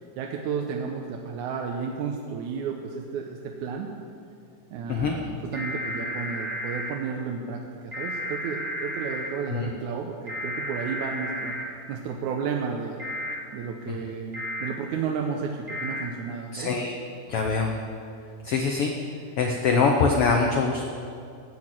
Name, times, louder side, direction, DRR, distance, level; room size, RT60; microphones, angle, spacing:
voice 1, 0.2-3.9 4.7-11.5 11.9-13.0 13.5-16.7, right 6 dB, 75° right, 1 dB, 2.1 m, -32 dB
sound 1, 5.5-6.9 7.9-9.3 10.3-11.6 13.0-13.3 14.3-14.7 15.7-16.0, equal, 35° right, 1.0 m, -32 dB
voice 2, 16.5-17.0 17.3-17.8 18.4-18.9 19.4-20.8, left 4 dB, 90° left, 2 dB, 1.2 m, -23 dB
14.0 x 6.3 x 8.8 m, 2.4 s
omnidirectional pair, 3.7 m